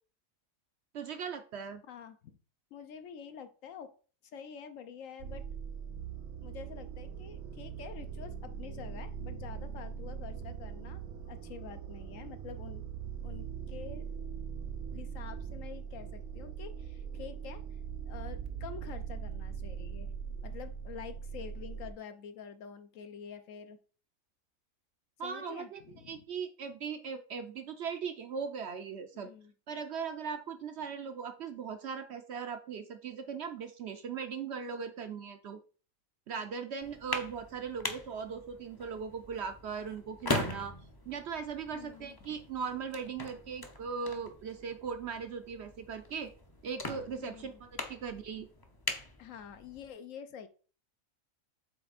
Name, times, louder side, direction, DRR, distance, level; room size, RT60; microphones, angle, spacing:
voice 1, 0.9-1.8 25.2-25.8 26.1-29.3 29.7-35.6 36.3-40.7 41.1-46.3 46.6-47.5 47.9-48.5, right 6 dB, 60° right, 7 dB, 0.8 m, -39 dB
voice 2, 1.9-2.4 2.7-3.9 4.2-5.5 6.4-12.8 13.2-14.1 14.9-17.6 18.0-20.1 20.4-23.8 25.2-26.2 29.2-29.5 41.7-42.4 47.1-47.6 49.2-50.5, left 7 dB, 70° left, 10 dB, 1.0 m, -47 dB
sound 1, 5.2-21.9, right 7 dB, 85° right, 1.2 m, -41 dB
sound 2, 36.8-49.9, left 2 dB, 25° left, 0.5 m, -41 dB
7.8 x 3.3 x 4.1 m, 0.39 s
omnidirectional pair, 1.5 m